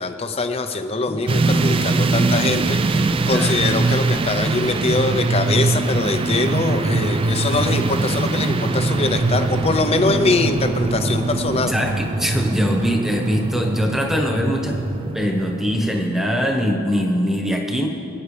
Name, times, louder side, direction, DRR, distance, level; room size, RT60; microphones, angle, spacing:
voice 1, 0.0-11.7, left 3 dB, 30° left, 8 dB, 0.6 m, -23 dB
sound 1, 1.3-16.0, right 3 dB, 25° right, 0.3 m, -22 dB
voice 2, 3.3-3.6 11.7-14.8 15.1-17.9, equal, ahead, 1 dB, 1.2 m, -22 dB
23.5 x 9.4 x 3.4 m, 2.9 s
head